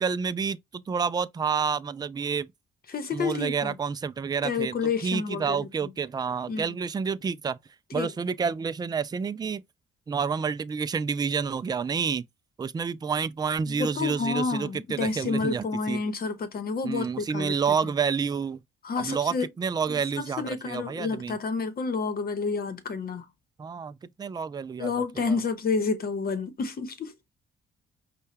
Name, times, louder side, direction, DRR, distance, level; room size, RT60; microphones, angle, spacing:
voice 1, 0.0-2.5 3.1-4.7 5.0-7.6 7.9-9.6 10.1-12.3 12.6-16.0 16.8-18.6 19.0-21.4 23.6-25.3, right 6 dB, 20° right, 0.3 m, -29 dB
voice 2, 2.9-3.8 4.4-5.9 6.5-6.8 7.9-8.1 13.7-17.5 18.8-19.5 19.9-23.2 24.8-27.1, left 4 dB, 50° left, 1.1 m, -30 dB
5.4 x 2.3 x 3.3 m
cardioid pair, 90°, 20 cm